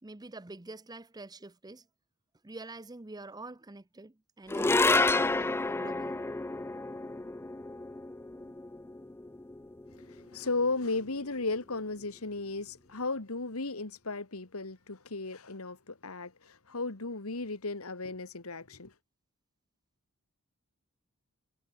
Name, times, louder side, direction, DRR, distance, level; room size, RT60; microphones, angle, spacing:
voice 1, 0.0-1.9 2.4-6.2, right 2 dB, 20° right, 0.7 m, -46 dB
sound 1, 4.5-11.0, left 3 dB, 10° left, 0.4 m, -30 dB
voice 2, 9.9-18.9, left 3 dB, 70° left, 1.9 m, -35 dB
head